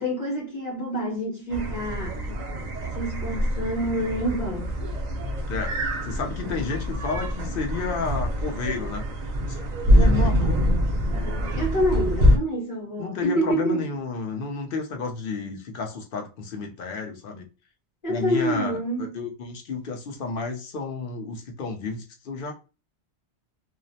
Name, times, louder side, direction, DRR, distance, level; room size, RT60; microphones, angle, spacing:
voice 1, 0.0-2.2 2.9-4.8 11.5-13.9 18.0-19.1, equal, 40° left, 1.1 m, -27 dB
sound 1, 1.5-12.4, equal, 50° right, 0.6 m, -24 dB
voice 2, 5.5-9.0 9.5-9.6 9.8-10.6 13.0-17.5 18.1-22.5, left 4 dB, 60° left, 0.8 m, -31 dB
2.4 x 2.0 x 2.6 m
omnidirectional pair, 1.1 m